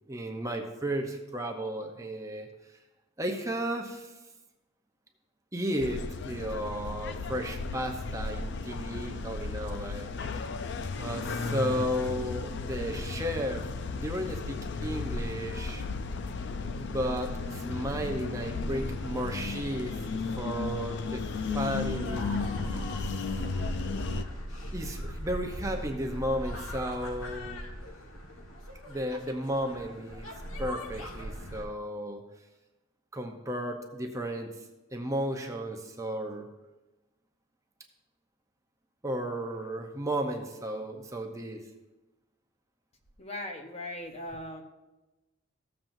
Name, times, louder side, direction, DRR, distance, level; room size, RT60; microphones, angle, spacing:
voice 1, 0.1-2.5 3.2-4.1 5.5-10.1 11.0-15.8 16.8-20.0 20.4-21.2 21.5-23.0 24.7-27.6 28.9-30.3 30.6-32.2 33.1-34.6 34.9-36.5 39.0-41.6, equal, 15° right, 3 dB, 0.7 m, -34 dB
sound 1, 5.8-24.2, left 4 dB, 60° left, 0.5 m, -35 dB
sound 2, 17.0-31.7, equal, 85° left, 1.4 m, -41 dB
voice 2, 43.2-44.6, left 1 dB, 30° left, 4 dB, 0.9 m, -39 dB
15.5 x 7.4 x 2.6 m, 1.1 s
head